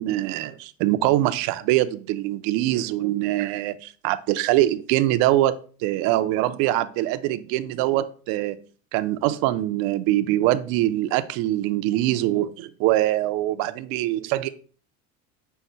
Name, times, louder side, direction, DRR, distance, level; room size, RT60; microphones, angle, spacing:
voice 1, 0.0-5.5 5.8-8.6 8.9-14.5, right 15 dB, 60° right, 0.5 m, -23 dB
5.6 x 2.1 x 3.8 m
supercardioid pair, 105°, 40 cm